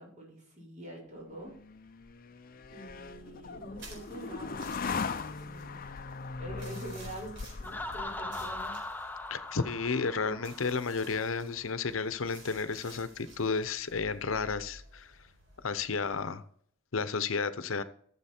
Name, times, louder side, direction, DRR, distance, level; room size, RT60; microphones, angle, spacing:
voice 1, 0.0-1.5 2.7-5.0 5.4-5.8 6.4-8.8 10.2-10.4, right 1 dB, 40° right, -3 dB, 4.5 m, -45 dB
sound 1, 1.5-8.9, left 5 dB, 45° left, 0.6 m, -40 dB
sound 2, 3.8-16.2, right 1 dB, 65° right, 4.4 m, -54 dB
Laughter, 7.6-11.3, left 2 dB, 10° left, 0.7 m, -40 dB
voice 2, 9.3-15.1 15.6-16.4 16.9-17.8, left 4 dB, 90° left, 13 dB, 0.8 m, -32 dB
13.5 x 7.3 x 4.4 m, 0.63 s
head